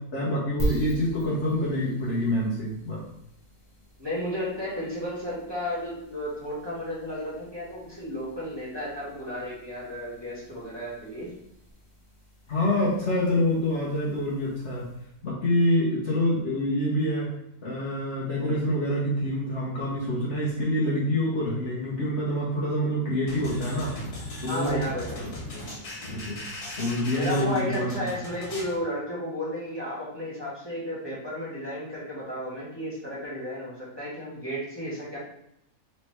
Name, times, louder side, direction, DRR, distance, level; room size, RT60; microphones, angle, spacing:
voice 1, 0.1-3.0 12.5-14.9 15.2-17.3 17.6-24.0 24.4-24.8 26.1-26.4 26.8-28.1, left 1 dB, 55° left, -5 dB, 1.2 m, -26 dB
sound 1, 0.6-15.3, right 1 dB, 30° left, 1.0 m, -41 dB
voice 2, 4.0-11.3 24.5-25.3 27.1-35.2, equal, 15° right, -8 dB, 1.4 m, -33 dB
sound 2, 23.3-28.8, left 1 dB, 80° left, 1.9 m, -38 dB
4.2 x 3.2 x 3.2 m, 0.78 s
omnidirectional pair, 1.6 m